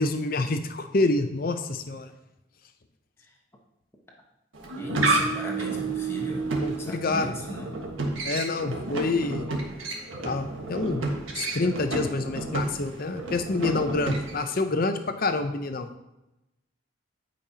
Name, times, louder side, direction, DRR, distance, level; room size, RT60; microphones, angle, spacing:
voice 1, 0.0-2.1 6.6-7.3 8.2-9.5 10.2-11.0 11.3-15.9, left 2 dB, 45° left, 8 dB, 0.6 m, -27 dB
sound 1, 4.5-14.6, right 3 dB, 85° right, 1.4 m, -30 dB
voice 2, 4.8-6.5 6.8-7.8, equal, 15° left, -1 dB, 1.1 m, -36 dB
13.5 x 5.3 x 2.8 m, 0.94 s
head